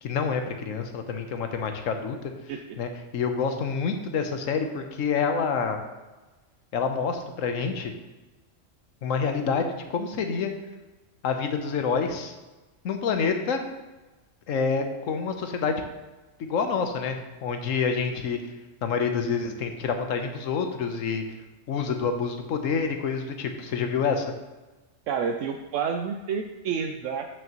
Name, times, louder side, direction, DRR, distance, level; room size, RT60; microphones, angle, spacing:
voice 1, 0.0-2.3 2.8-5.8 6.7-7.9 9.0-10.5 11.2-12.3 12.8-13.6 14.5-15.8 16.4-18.4 18.8-21.2 21.7-24.3, left 5 dB, 85° left, 6 dB, 1.2 m, -27 dB
voice 2, 2.5-2.8 25.1-27.3, right 6 dB, 75° right, 4 dB, 0.9 m, -29 dB
8.6 x 6.2 x 3.0 m, 1.2 s
omnidirectional pair, 1.3 m